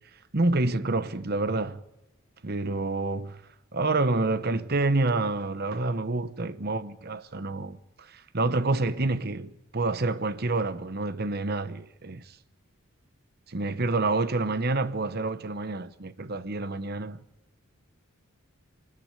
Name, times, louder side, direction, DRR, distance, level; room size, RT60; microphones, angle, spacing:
voice 1, 0.3-1.8 2.4-3.4 3.7-12.2 13.5-17.2, right 2 dB, 50° right, 1.0 m, -28 dB
25.0 x 12.0 x 9.7 m
head